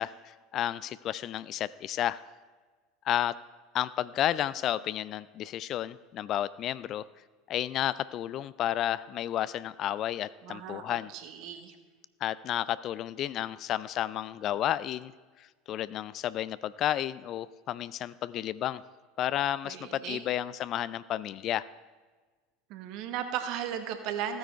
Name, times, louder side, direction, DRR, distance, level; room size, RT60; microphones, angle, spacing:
voice 1, 0.0-2.2 3.0-3.4 3.7-7.1 7.5-11.1 12.2-15.1 15.4-18.8 19.2-21.7, left 12 dB, 45° left, 18 dB, 0.3 m, -32 dB
voice 2, 10.4-11.8 19.6-20.2 22.7-24.4, right 9 dB, 50° right, 8 dB, 1.2 m, -36 dB
14.5 x 9.4 x 4.5 m, 1.4 s
figure-of-eight pair, 75°, 0 cm